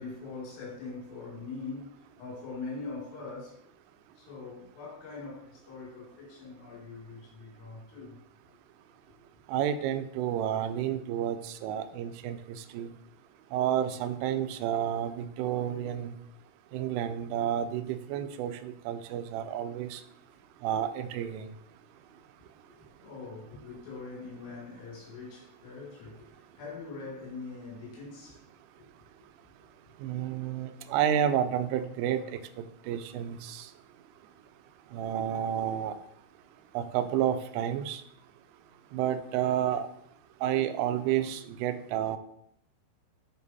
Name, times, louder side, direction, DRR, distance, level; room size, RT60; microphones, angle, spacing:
voice 1, 0.0-1.9 2.2-3.6 4.2-8.2 22.7-26.3 26.6-28.4 30.5-30.7, left 4 dB, 85° left, 4.6 m, -42 dB
voice 2, 9.5-12.4 12.7-12.9 13.5-16.1 16.7-20.0 20.6-21.5 30.0-32.4 32.9-33.7 34.9-35.9 36.7-38.0 38.9-39.9 40.4-42.2, right 10 dB, 85° right, 3.1 m, -30 dB
9.8 x 3.9 x 4.1 m
omnidirectional pair, 5.6 m